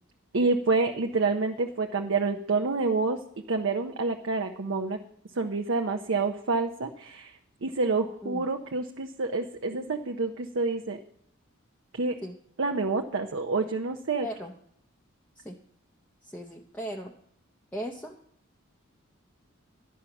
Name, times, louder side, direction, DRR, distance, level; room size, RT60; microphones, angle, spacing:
voice 1, 0.3-3.2 3.5-5.0 5.4-7.3 7.6-11.0 11.9-12.2 12.6-14.3, right 3 dB, 65° right, 4 dB, 0.6 m, -28 dB
voice 2, 14.2-14.5 15.4-15.6 16.2-17.1 17.7-18.1, equal, 5° left, 0 dB, 0.6 m, -37 dB
11.5 x 8.3 x 5.9 m, 0.70 s
head